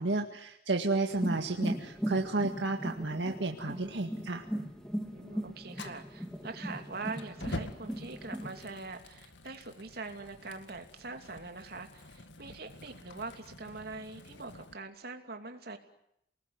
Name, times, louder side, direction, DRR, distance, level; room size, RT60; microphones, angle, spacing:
voice 1, 0.0-4.4, right 2 dB, 75° right, 3 dB, 1.9 m, -32 dB
sound 1, 1.1-8.8, equal, 5° left, 2.8 m, -38 dB
voice 2, 5.1-15.8, right 3 dB, 60° right, 5 dB, 2.9 m, -43 dB
Fire, 5.7-14.7, left 2 dB, 90° left, 2.1 m, -47 dB
29.0 x 20.5 x 9.6 m, 0.78 s
head